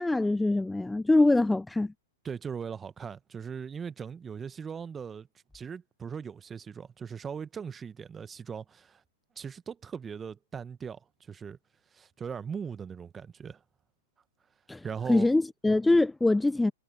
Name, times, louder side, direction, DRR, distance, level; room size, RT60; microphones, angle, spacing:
voice 1, 0.0-1.9 14.7-16.7, left 2 dB, 5° left, 0.4 m, -24 dB
voice 2, 2.2-5.3 5.5-9.0 9.4-11.6 11.9-13.6 14.8-15.3, right 6 dB, 20° right, 1.2 m, -39 dB
hypercardioid pair, 110°, 0 cm